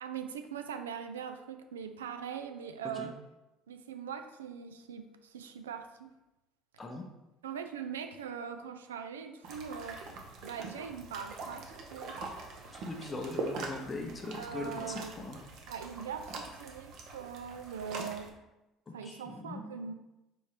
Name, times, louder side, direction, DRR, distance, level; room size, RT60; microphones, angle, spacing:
voice 1, 0.0-3.2 3.7-6.1 7.4-10.0 10.4-12.2 14.4-15.1 15.7-18.3 18.9-19.9, right 7 dB, 85° right, 8 dB, 0.3 m, -41 dB
sound 1, 9.4-18.3, right 3 dB, 60° right, 0.7 m, -43 dB
voice 2, 12.7-15.4 18.9-19.6, left 3 dB, 25° left, 2 dB, 0.7 m, -40 dB
4.2 x 3.6 x 3.2 m, 0.97 s
hypercardioid pair, 60°, 0 cm